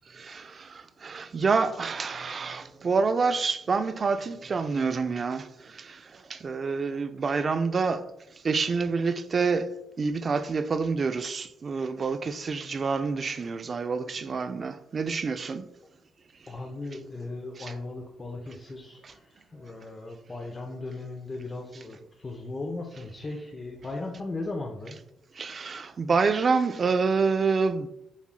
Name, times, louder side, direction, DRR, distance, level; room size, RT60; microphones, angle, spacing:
voice 1, 0.2-0.5 1.0-5.5 6.3-8.1 8.4-9.7 10.0-15.6 17.6-17.7 25.4-27.9, right 4 dB, 40° right, 0.4 m, -27 dB
voice 2, 16.5-25.0, left 2 dB, 30° left, 0.6 m, -37 dB
7.1 x 3.0 x 2.2 m
cardioid pair, 90°, 0 cm